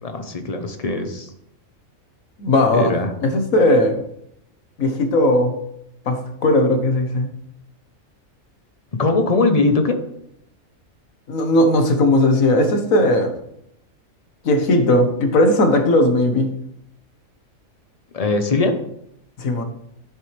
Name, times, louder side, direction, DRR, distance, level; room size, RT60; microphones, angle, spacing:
voice 1, 0.0-1.3 2.7-3.1 8.9-10.0 18.1-18.8, left 3 dB, 30° left, 7 dB, 0.9 m, -20 dB
voice 2, 2.4-2.9 3.2-4.0 4.8-5.5 6.1-7.3 11.3-13.3 14.4-16.5 19.4-19.6, left 1 dB, 80° left, 6 dB, 1.7 m, -17 dB
11.0 x 7.7 x 3.4 m, 0.75 s
omnidirectional pair, 1.4 m